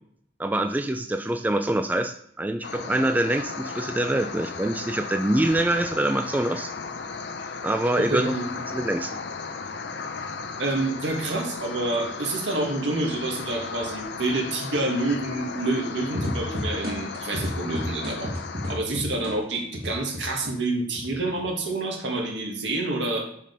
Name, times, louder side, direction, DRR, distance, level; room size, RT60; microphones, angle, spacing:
voice 1, 0.4-6.7 7.6-9.2, right 1 dB, 10° right, 7 dB, 0.3 m, -25 dB
sound 1, 2.6-18.8, left 4 dB, 65° left, 0.6 m, -36 dB
voice 2, 8.0-8.4 10.6-18.3 18.7-23.3, right 2 dB, 75° right, 1 dB, 1.9 m, -28 dB
sound 2, 16.1-20.5 20.9-21.7, left 1 dB, 55° right, 1.5 m, -31 dB
5.8 x 5.2 x 5.3 m, 0.69 s
head